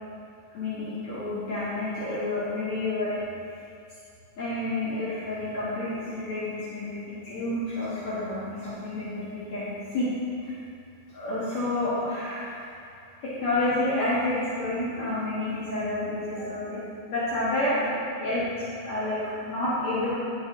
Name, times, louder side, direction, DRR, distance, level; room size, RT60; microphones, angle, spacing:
voice 1, 0.5-3.2 4.4-10.1 10.4-10.5 11.1-12.5 13.2-16.8 17.1-17.9 18.2-19.2 19.4-20.2, left 2 dB, 60° left, -11 dB, 2.7 m, -29 dB
10.5 x 7.2 x 3.7 m, 2.4 s
omnidirectional pair, 3.9 m